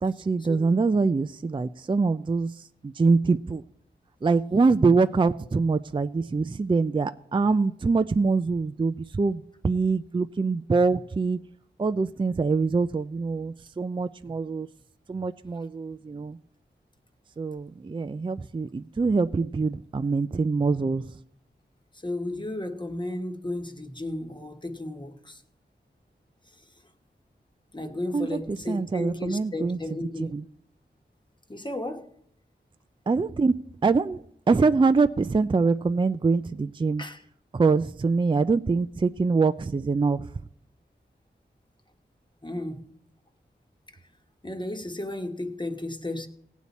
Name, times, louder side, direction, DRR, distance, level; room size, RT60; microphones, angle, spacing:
voice 1, 0.0-3.6 4.2-11.4 11.8-14.7 15.1-16.4 17.4-21.2 28.1-29.8 30.2-30.4 33.1-33.5 33.8-34.2 34.5-37.0 37.5-40.3, right 4 dB, 25° right, 0.4 m, -24 dB
voice 2, 21.9-25.4 27.7-30.3 31.5-32.1 37.0-37.2 42.4-42.9 44.4-46.3, left 1 dB, 25° left, 1.2 m, -34 dB
17.5 x 8.3 x 4.1 m
wide cardioid pair, 60°, 19 cm